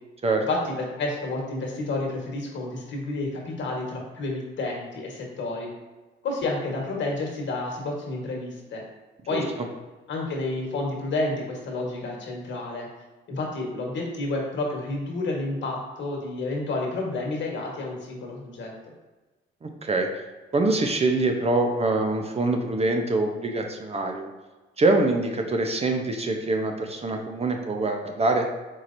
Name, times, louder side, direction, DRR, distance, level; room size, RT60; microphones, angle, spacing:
voice 1, 0.5-5.7 6.2-8.8 9.3-9.5 10.1-12.9 13.3-18.7, left 2 dB, 65° left, -1 dB, 1.4 m, -30 dB
voice 2, 19.6-20.1 20.5-24.3 24.8-28.5, right 2 dB, 30° right, 3 dB, 0.6 m, -24 dB
4.6 x 4.4 x 2.6 m, 1.2 s
cardioid pair, 90°, 20 cm